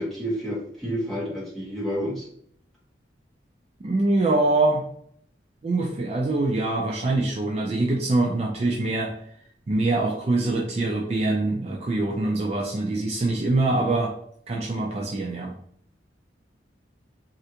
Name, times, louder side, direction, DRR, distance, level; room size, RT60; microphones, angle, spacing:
voice 1, 0.0-2.3, equal, ahead, -8 dB, 1.3 m, -29 dB
voice 2, 3.8-4.8 5.6-9.1 9.7-14.1 14.5-15.5, right 2 dB, 35° right, -2 dB, 0.4 m, -24 dB
3.2 x 2.5 x 2.8 m, 0.67 s
head